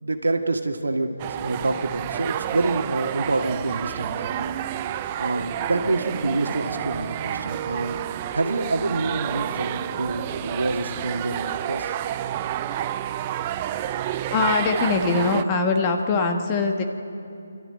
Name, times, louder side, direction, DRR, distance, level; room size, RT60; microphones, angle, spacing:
voice 1, 0.0-4.5 5.2-8.0 8.3-11.9, right 2 dB, 90° right, 4 dB, 1.9 m, -27 dB
sound 1, 1.2-15.4, right 11 dB, 25° right, 0.5 m, -30 dB
voice 2, 14.3-16.8, left 4 dB, 25° left, 4 dB, 1.4 m, -22 dB
26.5 x 13.0 x 9.0 m, 2.8 s
hypercardioid pair, 160°, 0 cm